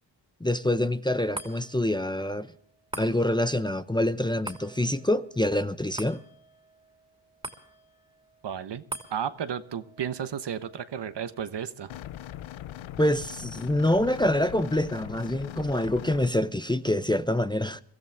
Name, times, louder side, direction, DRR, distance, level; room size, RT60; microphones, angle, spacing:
voice 1, 0.4-2.5 3.0-6.2 13.0-17.8, left 1 dB, 10° left, 0.7 m, -26 dB
sound 1, 1.3-13.9 14.4-14.5, right 2 dB, 10° right, 2.8 m, -46 dB
voice 2, 8.4-8.8 9.1-11.9, right 8 dB, 60° right, 1.2 m, -33 dB
sound 2, 11.9-16.3, left 12 dB, 75° left, 0.7 m, -40 dB
23.5 x 14.0 x 3.5 m
cardioid pair, 60°, 47 cm